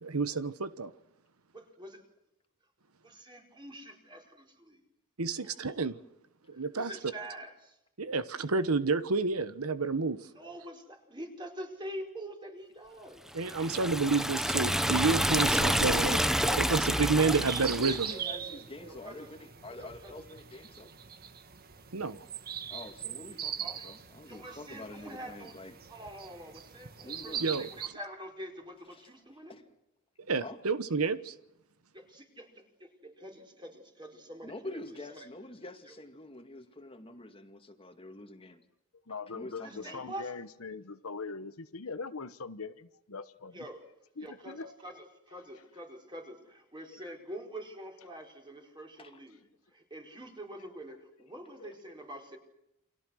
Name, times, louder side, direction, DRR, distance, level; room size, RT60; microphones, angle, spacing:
voice 1, 0.0-0.9 5.2-5.9 6.5-6.9 8.0-10.2 13.3-16.2 16.6-18.1 21.9-22.2 27.4-27.7 30.3-31.3, right 4 dB, 90° right, 1.2 m, -29 dB
voice 2, 1.5-2.0 3.0-4.8 5.4-5.7 6.5-7.8 10.0-13.2 18.9-19.3 19.8-20.1 23.4-23.9 24.3-25.5 25.9-29.6 31.9-35.3 35.8-35.9 39.6-40.3 43.5-43.8 44.2-49.4 49.7-52.4, right 1 dB, 20° right, 4.8 m, -46 dB
Liquid, 13.4-18.1, equal, ahead, 0.9 m, -28 dB
sound 1, 14.6-27.9, right 8 dB, 45° right, 1.4 m, -42 dB
voice 3, 16.4-20.9 22.7-25.7 27.0-27.5 29.5-29.6 30.4-30.6 34.4-38.6 39.3-40.0 49.0-49.1, left 1 dB, 25° left, 2.2 m, -46 dB
voice 4, 39.1-43.7 44.2-44.7 46.8-47.0 51.6-51.7, left 4 dB, 75° left, 1.1 m, -41 dB
29.5 x 24.5 x 6.4 m
head